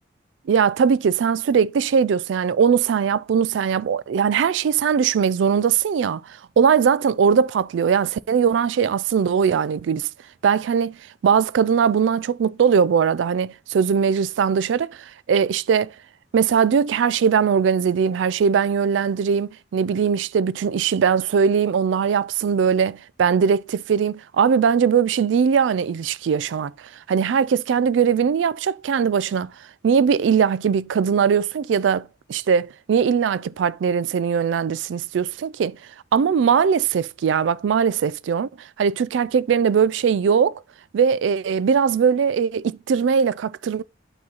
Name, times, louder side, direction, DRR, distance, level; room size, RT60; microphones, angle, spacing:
voice 1, 0.5-10.1 10.4-11.0 11.2-15.0 15.3-15.9 16.3-26.7 27.1-29.5 29.8-35.8 36.1-38.5 38.8-40.6 40.9-43.8, right 6 dB, 75° right, 0.3 m, -20 dB
8.6 x 3.0 x 3.9 m
head